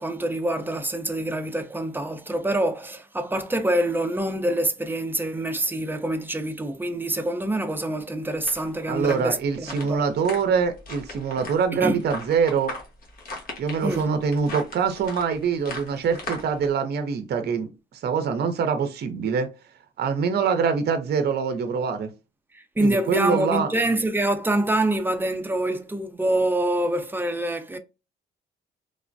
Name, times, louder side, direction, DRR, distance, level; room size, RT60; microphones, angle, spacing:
voice 1, 0.0-10.0 11.8-12.0 13.8-14.1 22.5-27.8, right 1 dB, 10° right, 0.5 m, -26 dB
sound 1, 8.3-16.7, left 2 dB, 45° left, 1.2 m, -39 dB
voice 2, 8.9-12.7 13.6-17.7 18.0-19.5 20.0-22.1 22.8-23.7, right 6 dB, 55° right, 0.6 m, -24 dB
3.3 x 2.0 x 2.5 m
cardioid pair, 90°, 20 cm